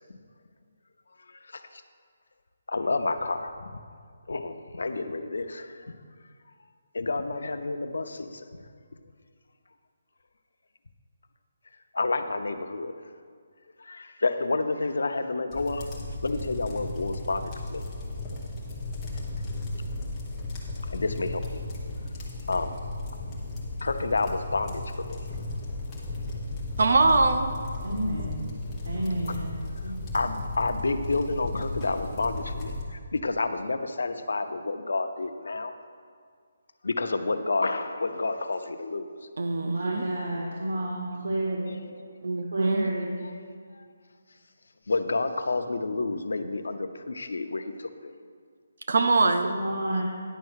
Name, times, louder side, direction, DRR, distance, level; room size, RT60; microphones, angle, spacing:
voice 1, 2.7-3.5 4.3-5.6 6.9-8.3 12.0-12.9 13.9-15.8 16.2-17.4 17.7-17.8 20.9-21.4 22.5-22.7 23.8-24.8 25.1-25.2 30.1-32.7 33.1-35.7 36.8-39.1 44.9-47.6 48.0-48.1, left 3 dB, 85° left, 0.7 m, -29 dB
sound 1, 15.5-32.8, left 2 dB, 10° left, 1.0 m, -35 dB
voice 2, 26.8-27.5 39.4-40.1 42.2-42.9 48.9-49.5, right 3 dB, 55° right, 0.5 m, -23 dB
voice 3, 27.8-28.5 28.8-29.5 29.8-29.9 39.6-41.8 42.5-43.1 49.4-50.0, right 1 dB, 90° right, 1.6 m, -30 dB
10.0 x 5.6 x 6.3 m
hypercardioid pair, 180°, 0 cm